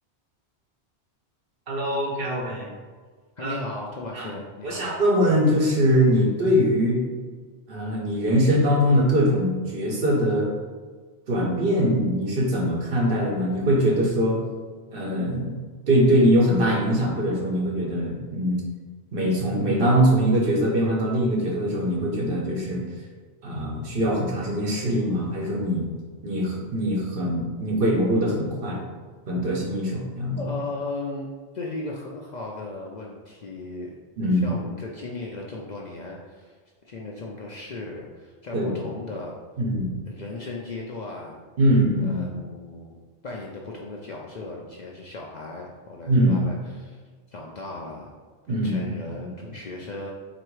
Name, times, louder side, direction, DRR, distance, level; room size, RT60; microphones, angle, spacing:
voice 1, 1.7-2.7 3.4-3.6 4.1-4.3 4.6-7.0 7.7-10.5 11.3-14.4 14.9-15.6 15.9-18.6 19.1-22.8 23.4-25.9 26.2-28.8 29.3-30.5 34.2-34.6 38.5-38.8 39.6-39.9 41.6-42.3 46.1-46.4 48.5-49.1, equal, 55° right, -2 dB, 1.1 m, -22 dB
voice 2, 3.4-4.9 30.4-33.9 34.3-36.6 36.8-39.3 40.1-41.4 42.0-43.0 43.2-47.0 47.3-48.1 48.5-50.1, left 2 dB, 50° left, -2 dB, 0.5 m, -36 dB
3.8 x 3.0 x 4.6 m, 1.5 s
omnidirectional pair, 1.1 m